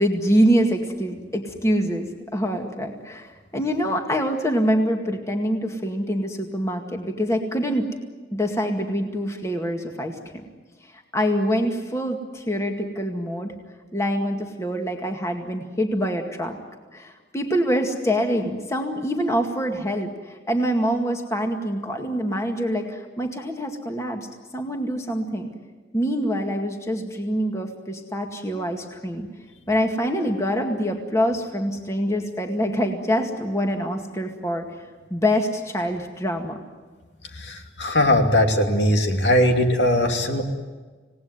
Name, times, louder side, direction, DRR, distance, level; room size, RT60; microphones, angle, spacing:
voice 1, 0.0-7.8 8.3-10.1 11.1-13.5 13.9-16.6 16.9-24.3 24.5-25.5 25.9-29.3 29.7-34.7 35.1-36.6, equal, 15° left, 3 dB, 2.0 m, -25 dB
voice 2, 37.4-40.4, left 1 dB, 70° left, 4 dB, 2.6 m, -20 dB
27.0 x 18.5 x 9.6 m, 1.4 s
head